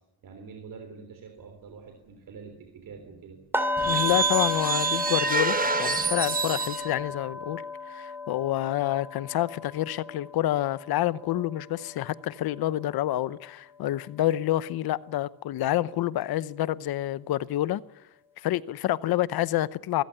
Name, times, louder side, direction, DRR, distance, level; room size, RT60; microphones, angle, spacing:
voice 1, 0.2-3.4, right 5 dB, 60° right, 3.4 m, -45 dB
sound 1, 3.5-13.5 13.8-14.1 14.5-14.7, left 2 dB, 5° right, 2.9 m, -34 dB
sound 2, 3.8-6.9, right 5 dB, 25° right, 1.2 m, -27 dB
voice 2, 3.9-17.8 18.4-20.0, left 14 dB, 80° left, 0.9 m, -28 dB
22.5 x 15.0 x 9.9 m
cardioid pair, 125°, 36 cm